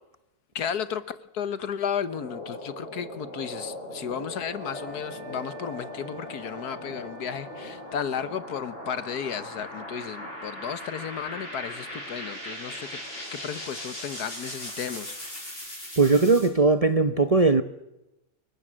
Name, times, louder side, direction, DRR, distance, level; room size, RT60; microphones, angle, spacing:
voice 1, 0.5-13.0 13.3-15.2, left 8 dB, 80° left, 1.7 m, -33 dB
sound 1, 1.9-16.5, left 1 dB, 35° left, 8.3 m, -39 dB
sound 2, 4.4-8.4, equal, 80° right, 6.4 m, -45 dB
voice 2, 16.0-17.6, right 3 dB, 30° right, 0.8 m, -19 dB
29.5 x 22.5 x 7.6 m
omnidirectional pair, 1.6 m